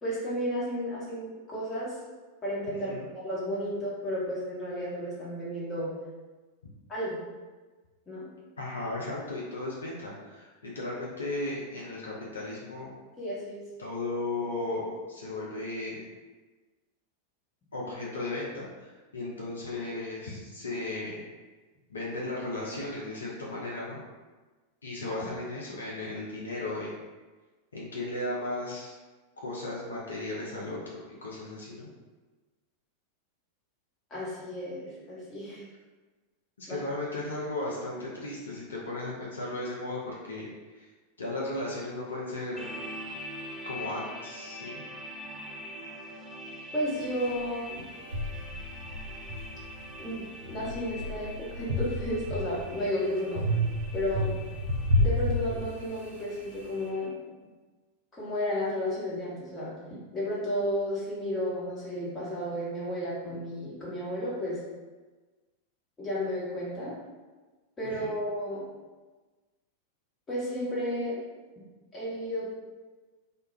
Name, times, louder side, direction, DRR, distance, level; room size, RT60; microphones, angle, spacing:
voice 1, 0.0-2.0 2.4-2.9 3.2-5.9 6.9-7.2 8.1-8.3 13.2-13.6 25.1-25.2 34.1-35.7 36.7-36.8 46.7-47.9 50.0-53.5 53.9-54.4 55.0-57.1 58.1-59.7 60.1-64.6 66.0-66.9 67.8-68.6 70.3-71.2 71.9-72.5, equal, 20° left, -8 dB, 1.0 m, -32 dB
voice 2, 8.6-12.9 13.8-16.0 17.7-21.2 21.9-24.0 24.8-26.9 27.7-28.9 29.4-31.9 36.6-40.9 41.2-42.6 43.7-44.8 68.0-68.1, left 2 dB, 70° left, -5 dB, 0.4 m, -35 dB
sound 1, 42.6-57.1, left 1 dB, 10° right, 0.4 m, -44 dB
sound 2, 47.3-47.4 48.1-50.0 50.4-52.8 53.4-56.1, equal, 65° right, 0.5 m, -30 dB
2.3 x 2.1 x 3.1 m, 1.3 s
figure-of-eight pair, 90°, 0 cm